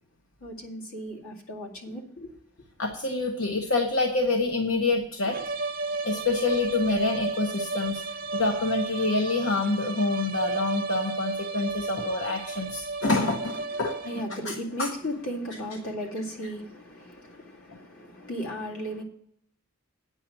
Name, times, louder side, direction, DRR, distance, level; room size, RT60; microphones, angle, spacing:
voice 1, 0.4-2.3 14.0-19.0, equal, 85° left, 2.2 m, -36 dB
voice 2, 2.8-5.4 6.0-8.0 8.3-13.9 14.5-14.9, left 3 dB, 70° left, 1.0 m, -27 dB
sound 1, 5.3-14.5, right 3 dB, 40° right, 0.6 m, -33 dB
9.2 x 5.6 x 7.2 m
head